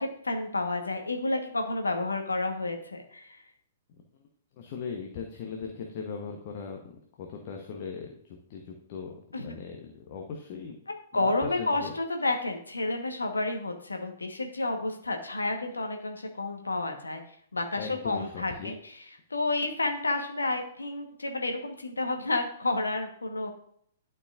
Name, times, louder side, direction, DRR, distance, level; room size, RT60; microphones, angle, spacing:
voice 1, 0.0-3.4 9.3-9.5 11.1-17.2 17.5-18.7 19.3-23.5, left 2 dB, 75° left, 4 dB, 1.2 m, -30 dB
voice 2, 4.6-6.8 7.2-10.8 11.1-11.9 17.8-18.7, left 5 dB, 40° left, 2 dB, 1.0 m, -39 dB
12.0 x 4.6 x 2.5 m, 0.64 s
figure-of-eight pair, 115°, 0 cm